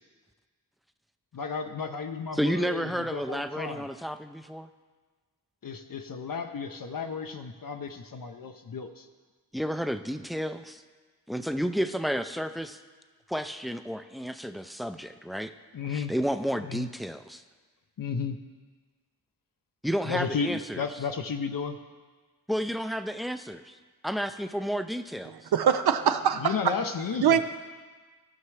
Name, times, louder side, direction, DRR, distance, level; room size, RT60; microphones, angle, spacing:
voice 1, 1.3-3.9 5.6-9.1 15.7-16.1 16.6-16.9 18.0-18.4 20.0-21.8 26.3-27.4, left 5 dB, 60° left, 5 dB, 0.6 m, -33 dB
voice 2, 2.3-4.7 9.5-10.8 11.3-12.8 13.3-15.5 15.9-17.4 19.8-20.8 22.5-23.8 24.0-25.5, equal, ahead, 9 dB, 0.4 m, -31 dB
voice 3, 25.5-26.7 27.2-27.4, right 8 dB, 75° right, 9 dB, 0.5 m, -23 dB
14.5 x 5.8 x 3.2 m, 1.4 s
cardioid pair, 45°, 39 cm